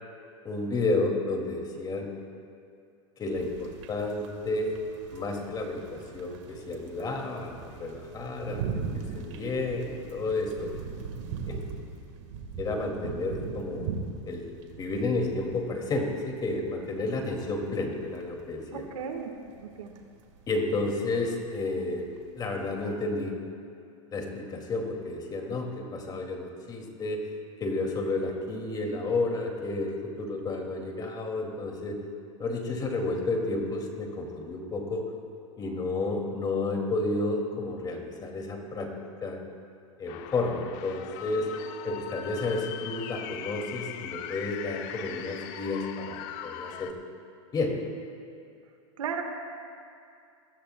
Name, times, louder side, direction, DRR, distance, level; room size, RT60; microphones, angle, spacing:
voice 1, 0.4-2.1 3.2-4.7 5.1-10.7 11.5-11.6 12.6-13.9 14.2-18.8 20.5-22.1 22.3-23.4 24.1-27.2 27.6-32.0 32.4-35.0 35.6-38.9 39.2-39.4 40.0-41.5 41.8-46.9 47.5-47.8, left 2 dB, 25° left, 2 dB, 2.3 m, -31 dB
sound 1, 3.3-23.0, right 5 dB, 65° right, 1.5 m, -40 dB
voice 2, 18.7-19.3 19.6-19.9 49.0-49.2, right 7 dB, 85° right, 4 dB, 1.5 m, -35 dB
sound 2, 40.1-46.9, left 10 dB, 50° left, 0.8 m, -40 dB
22.0 x 15.0 x 2.2 m, 2.4 s
hypercardioid pair, 110°, 16 cm